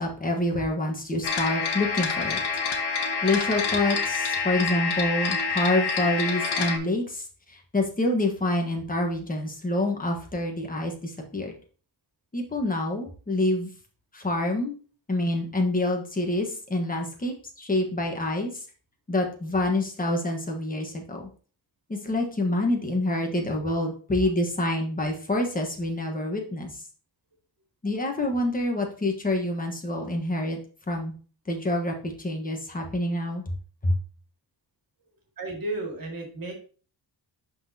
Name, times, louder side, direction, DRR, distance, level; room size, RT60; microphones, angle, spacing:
voice 1, 0.0-2.4 3.2-7.2 7.5-11.5 12.3-13.7 14.1-14.7 15.1-18.6 19.1-21.2 21.9-26.7 27.8-30.6 30.9-31.1 31.5-33.4 33.8-33.9, left 1 dB, 20° left, 2 dB, 1.2 m, -27 dB
sound 1, 1.2-6.8, left 5 dB, 60° left, 1.3 m, -27 dB
voice 2, 35.4-36.5, right 2 dB, 50° right, 1 dB, 2.0 m, -33 dB
11.0 x 4.1 x 2.8 m, 0.39 s
wide cardioid pair, 175°, 45 cm